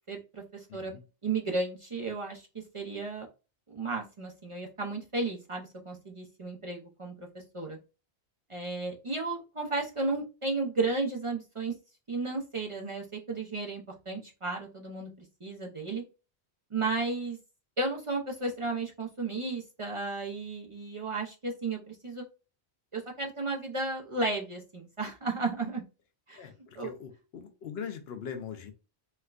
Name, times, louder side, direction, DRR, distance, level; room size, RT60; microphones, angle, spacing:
voice 1, 0.1-0.9 1.2-3.3 3.7-7.8 8.5-11.7 12.1-15.1 15.4-16.0 16.7-17.4 17.8-22.2 22.9-25.8 26.3-26.5 26.7-26.9, right 3 dB, 35° right, 0.6 m, -34 dB
voice 2, 0.7-1.0 26.4-28.7, left 7 dB, 75° left, 0.9 m, -41 dB
4.4 x 2.2 x 2.3 m
omnidirectional pair, 1.1 m